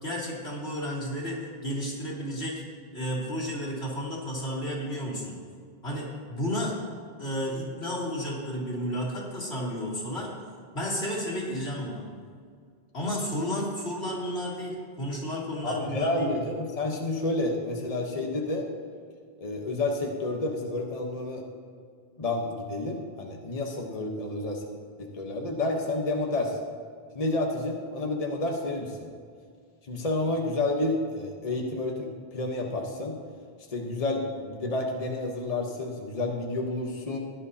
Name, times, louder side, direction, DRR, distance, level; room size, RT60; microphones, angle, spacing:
voice 1, 0.0-2.6 2.9-5.4 5.8-6.8 7.2-10.3 10.7-12.1 12.9-16.3, equal, 85° left, -5 dB, 3.0 m, -32 dB
voice 2, 15.6-18.7 19.4-21.5 22.2-24.7 25.0-26.6 27.1-29.1 29.8-33.2 33.7-37.2, left 2 dB, 40° left, 1 dB, 1.1 m, -30 dB
16.5 x 10.5 x 2.8 m, 2.1 s
omnidirectional pair, 1.0 m